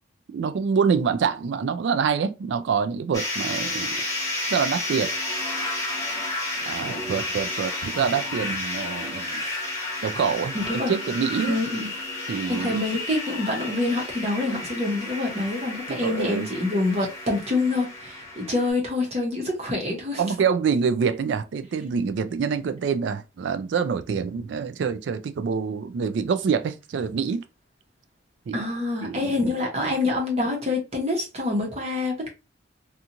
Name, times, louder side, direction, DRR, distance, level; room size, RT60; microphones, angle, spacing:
voice 1, 0.3-3.9 4.5-5.1 6.7-9.5 10.0-11.6 12.3-12.8 15.9-16.5 20.2-27.4 28.5-28.6 29.0-29.4, right 6 dB, 60° right, 0.3 m, -26 dB
sound 1, 3.1-18.7, left 2 dB, 15° left, 1.0 m, -31 dB
voice 2, 10.5-11.0 11.5-12.0 12.5-20.2 28.5-32.3, left 2 dB, 35° right, 0.9 m, -26 dB
2.9 x 2.4 x 2.5 m
head